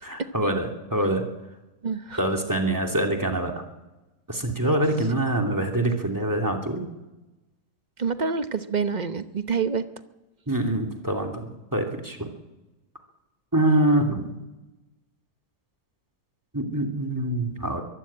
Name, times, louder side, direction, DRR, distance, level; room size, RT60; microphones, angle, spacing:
voice 1, 0.0-1.2 2.2-3.5 4.3-6.9 10.5-12.3 13.5-14.3 16.5-17.8, right 1 dB, 10° right, 5 dB, 2.7 m, -25 dB
voice 2, 1.8-2.2 8.0-9.8, right 5 dB, 35° right, 10 dB, 0.8 m, -27 dB
23.5 x 14.5 x 8.8 m, 1.0 s
omnidirectional pair, 1.7 m